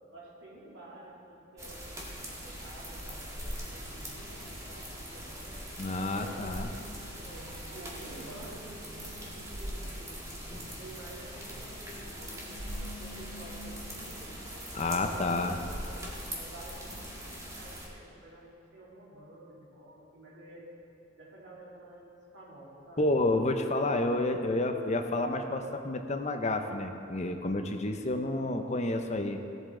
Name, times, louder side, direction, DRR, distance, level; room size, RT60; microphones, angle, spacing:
voice 1, 0.1-2.0 2.4-5.6 6.2-10.4 10.7-14.3 14.8-16.0 16.4-20.7 21.2-23.1, right 1 dB, 70° right, -5 dB, 2.8 m, -50 dB
sound 1, 1.6-17.9, equal, 15° right, 1.7 m, -41 dB
sound 2, 3.5-17.2, equal, 50° right, 2.3 m, -53 dB
voice 2, 5.8-6.7 14.7-15.6 23.0-29.4, left 2 dB, 35° left, 6 dB, 0.7 m, -30 dB
16.5 x 8.0 x 3.8 m, 2.8 s
head